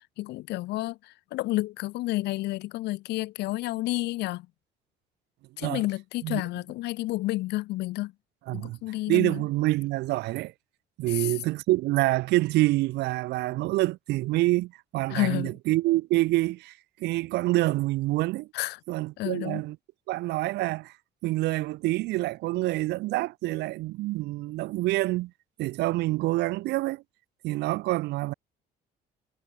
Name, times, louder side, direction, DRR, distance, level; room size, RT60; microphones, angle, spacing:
voice 1, 0.0-4.5 5.6-8.1 8.5-9.4 11.1-11.3 15.1-15.6 18.5-18.8 19.2-19.6, left 18 dB, 85° left, 3.2 m, -30 dB
voice 2, 8.5-8.8 9.1-10.5 11.0-18.5 18.9-19.7 20.1-20.9 21.2-25.3 25.6-27.0 27.4-28.3, right 19 dB, 85° right, 1.7 m, -27 dB
cardioid pair, 110°, 17 cm